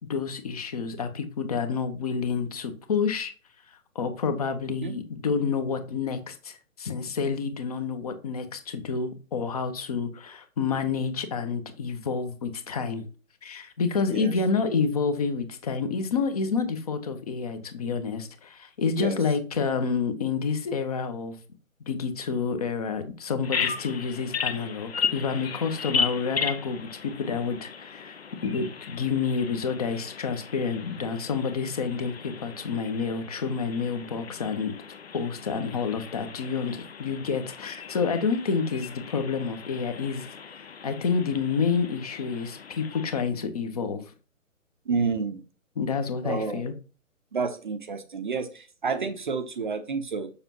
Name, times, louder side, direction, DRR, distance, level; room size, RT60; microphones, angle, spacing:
voice 1, 0.0-3.3 3.9-13.1 13.4-21.4 21.9-34.7 35.1-40.3 40.8-44.0 45.8-46.7, left 5 dB, 30° left, 1.0 m, -29 dB
Bird vocalization bird call bird song, 23.4-43.2, left 6 dB, 50° left, 1.0 m, -36 dB
voice 2, 44.9-45.4 46.2-46.8 47.3-50.3, right 5 dB, 35° right, 0.8 m, -30 dB
7.0 x 6.9 x 2.9 m
figure-of-eight pair, 135°, 41 cm